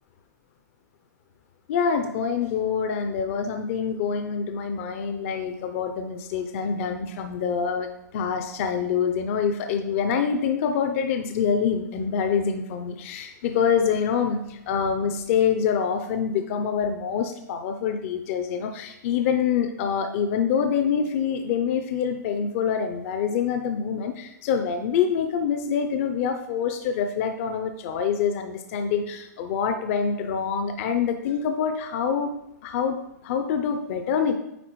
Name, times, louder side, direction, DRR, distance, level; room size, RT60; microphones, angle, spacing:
voice 1, 1.7-32.3 32.6-34.3, left 7 dB, 45° left, 7 dB, 0.5 m, -26 dB
9.1 x 4.0 x 3.1 m, 0.86 s
hypercardioid pair, 140°, 10 cm